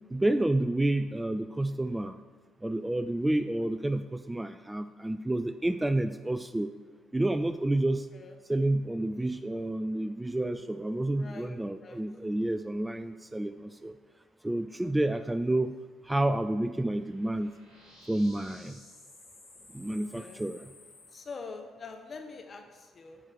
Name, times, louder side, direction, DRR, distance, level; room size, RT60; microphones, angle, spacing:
voice 1, 0.1-2.2 2.6-6.7 7.1-8.1 8.5-13.9 14.4-15.7 16.0-17.5 18.1-18.8 19.7-20.7, right 1 dB, 10° right, 11 dB, 0.3 m, -29 dB
voice 2, 11.0-11.5 11.8-12.0 14.8-14.9 19.9-20.4 21.1-23.2, left 4 dB, 35° left, 4 dB, 1.2 m, -45 dB
sound 1, 16.8-21.2, left 1 dB, 80° left, 2.4 m, -54 dB
9.7 x 4.5 x 6.2 m, 1.4 s
figure-of-eight pair, 45°, 0 cm